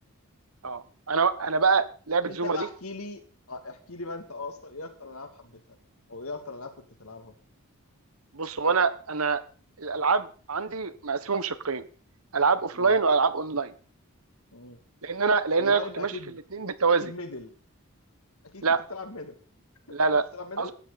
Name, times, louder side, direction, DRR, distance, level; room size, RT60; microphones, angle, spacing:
voice 1, 0.6-2.7 8.3-9.4 9.8-11.8 12.3-13.7 15.0-16.1 16.5-17.0 18.6-18.8 19.9-20.2 20.6-20.7, right 4 dB, 75° right, 13 dB, 1.3 m, -25 dB
voice 2, 2.3-3.2 3.5-5.6 6.1-7.3 12.7-13.0 14.5-14.8 15.6-16.4 17.0-17.5 18.4-19.4 19.9-20.0 20.3-20.7, left 3 dB, 75° left, 6 dB, 2.7 m, -39 dB
17.5 x 12.5 x 4.2 m, 0.39 s
head